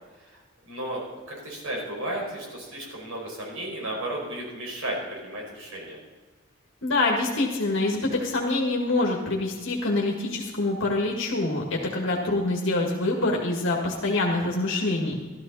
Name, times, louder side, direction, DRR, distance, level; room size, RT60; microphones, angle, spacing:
voice 1, 0.2-6.0, right 1 dB, 75° right, -2 dB, 5.1 m, -34 dB
voice 2, 6.8-15.2, left 2 dB, 65° left, -1 dB, 1.9 m, -25 dB
13.5 x 13.5 x 4.1 m, 1.4 s
head